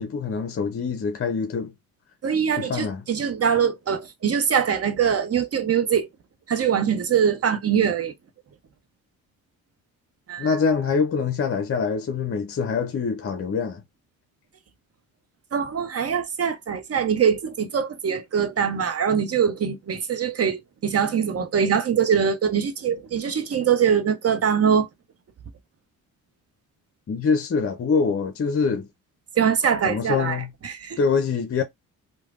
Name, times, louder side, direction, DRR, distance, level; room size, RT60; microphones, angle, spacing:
voice 1, 0.0-1.7 2.6-3.0 10.4-13.8 27.1-28.9 29.9-30.5 31.0-31.6, left 5 dB, 40° left, 0.7 m, -24 dB
voice 2, 2.2-6.1 6.5-8.1 10.3-10.5 15.5-24.9 29.4-31.0, right 7 dB, 40° right, 0.8 m, -23 dB
3.1 x 2.2 x 2.4 m
supercardioid pair, 60°, 37 cm